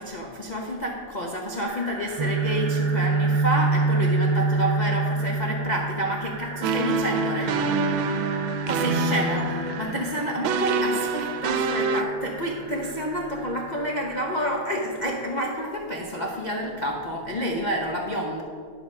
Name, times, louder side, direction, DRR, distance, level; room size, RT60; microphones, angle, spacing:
voice 1, 0.0-8.2 8.6-18.4, equal, 70° left, -2 dB, 0.4 m, -29 dB
sound 1, 1.6-14.5, right 2 dB, 40° right, 0.9 m, -41 dB
Guitar, 2.2-10.0, right 3 dB, 70° right, 1.3 m, -27 dB
sound 2, 6.6-12.0, right 4 dB, 85° right, 1.4 m, -26 dB
11.0 x 5.6 x 5.4 m, 2.2 s
omnidirectional pair, 2.2 m